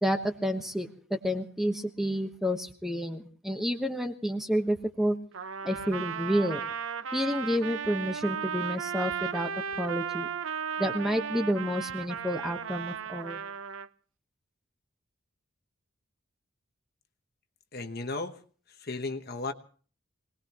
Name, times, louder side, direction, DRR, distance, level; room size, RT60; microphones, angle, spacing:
voice 1, 0.0-5.1 5.6-6.6 7.1-9.5 9.8-10.3 10.8-13.4, equal, ahead, 5 dB, 1.1 m, -30 dB
Trumpet, 5.3-13.9, right 7 dB, 70° right, 0.7 m, -35 dB
voice 2, 17.7-18.4 18.8-19.5, left 3 dB, 45° left, 7 dB, 1.1 m, -34 dB
25.5 x 19.0 x 2.9 m, 0.43 s
head